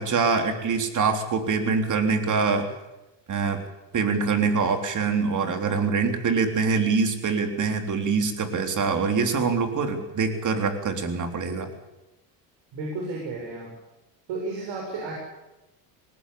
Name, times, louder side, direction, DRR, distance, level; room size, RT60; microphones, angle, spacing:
voice 1, 0.0-2.6 3.3-3.6 3.9-11.7, right 5 dB, 40° right, 6 dB, 3.7 m, -24 dB
voice 2, 12.7-13.7 14.3-15.2, right 3 dB, 65° right, -1 dB, 7.0 m, -32 dB
19.5 x 19.5 x 8.5 m, 0.99 s
supercardioid pair, 105°, 47 cm